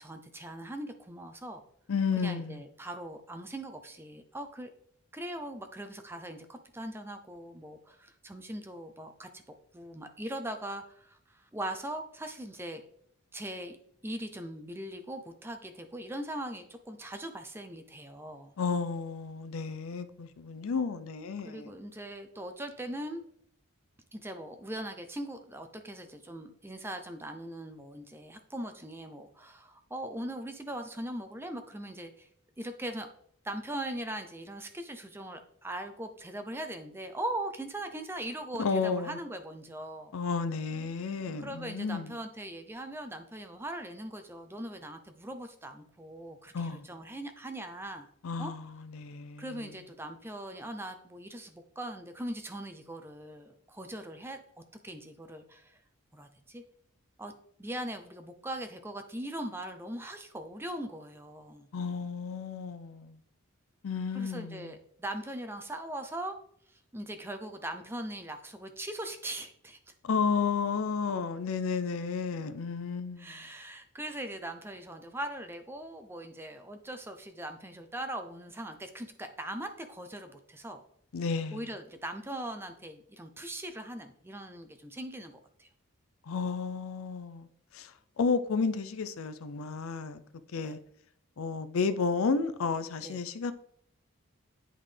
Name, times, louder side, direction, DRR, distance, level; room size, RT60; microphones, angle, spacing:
voice 1, 0.0-1.6 2.2-4.7 5.1-9.4 9.7-12.8 13.3-13.8 14.0-18.5 21.4-23.2 24.1-32.3 32.6-33.1 33.4-40.1 41.4-48.1 48.4-48.5 49.4-55.8 56.1-56.6 57.2-57.3 57.6-61.7 64.1-66.4 66.7-69.9 73.2-80.8 81.5-85.3 85.6-85.7 90.6-90.8 93.0-93.2, right 1 dB, 10° right, 0.5 m, -40 dB
voice 2, 1.9-2.6 18.6-21.7 38.6-39.2 40.1-42.1 46.5-46.8 48.2-49.6 61.7-63.2 63.8-64.7 70.0-73.4 81.1-81.7 86.3-87.5 87.7-87.9 88.2-90.2 90.5-90.8 91.4-93.5, left 5 dB, 75° left, 0.5 m, -32 dB
10.0 x 3.7 x 3.3 m
head